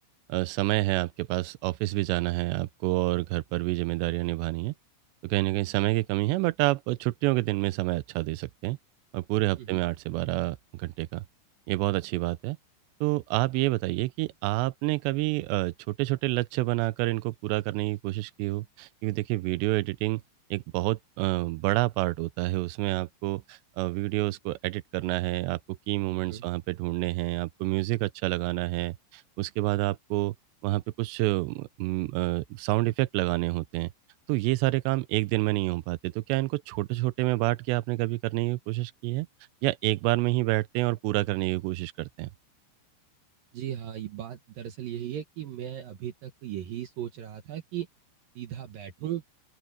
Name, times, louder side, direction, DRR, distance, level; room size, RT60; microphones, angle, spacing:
voice 1, 0.3-4.7 5.2-8.8 9.1-11.2 11.7-12.6 13.0-20.2 20.5-30.4 30.6-33.9 34.3-39.3 39.6-42.3, right 19 dB, 85° right, 2.7 m, -28 dB
voice 2, 43.5-47.9 48.4-49.2, right 11 dB, 70° right, 2.4 m, -37 dB
open air
omnidirectional pair, 5.3 m